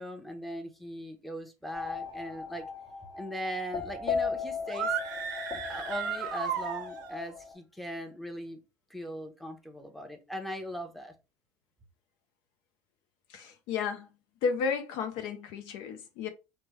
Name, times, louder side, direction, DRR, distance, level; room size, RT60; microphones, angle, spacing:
voice 1, 0.0-2.7 3.2-4.9 5.7-8.6 8.9-11.1, equal, ahead, 0.8 m, -39 dB
sound 1, 1.7-7.5, left 5 dB, 40° left, 1.0 m, -37 dB
sound 2, 4.7-7.3, right 7 dB, 80° right, 0.6 m, -34 dB
voice 2, 13.3-14.1 14.4-16.3, left 5 dB, 65° left, 0.5 m, -32 dB
3.2 x 2.1 x 3.1 m
hypercardioid pair, 70°, 9 cm